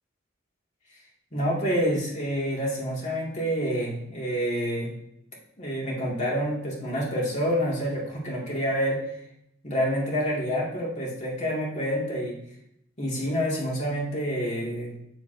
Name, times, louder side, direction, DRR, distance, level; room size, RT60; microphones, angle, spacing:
voice 1, 1.3-4.9 5.6-9.0 9.6-12.4 13.0-14.9, equal, 40° left, -4 dB, 2.3 m, -28 dB
9.1 x 7.9 x 2.7 m, 0.77 s
head